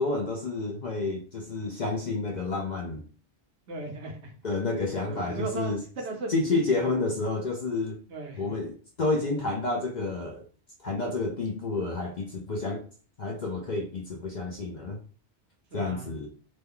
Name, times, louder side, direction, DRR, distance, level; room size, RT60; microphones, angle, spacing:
voice 1, 0.0-3.0 4.4-5.8 6.3-8.0 8.4-10.4 10.8-12.8 13.2-15.0 15.7-16.3, left 3 dB, 55° left, 1 dB, 0.5 m, -30 dB
voice 2, 3.7-4.3 5.1-7.0 8.1-8.5 15.7-16.1, right 3 dB, 70° right, 2 dB, 1.1 m, -37 dB
3.1 x 2.2 x 3.5 m, 0.41 s
omnidirectional pair, 1.2 m